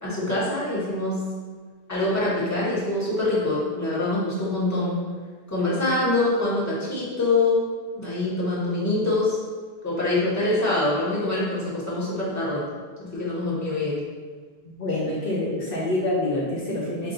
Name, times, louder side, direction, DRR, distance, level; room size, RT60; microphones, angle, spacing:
voice 1, 0.0-1.2 1.9-5.0 5.5-7.6 7.9-9.4 9.8-12.6 13.0-14.0, left 2 dB, 15° left, -8 dB, 1.2 m, -24 dB
voice 2, 14.6-17.1, left 1 dB, 65° left, -5 dB, 1.0 m, -26 dB
5.7 x 2.4 x 3.9 m, 1.5 s
omnidirectional pair, 1.0 m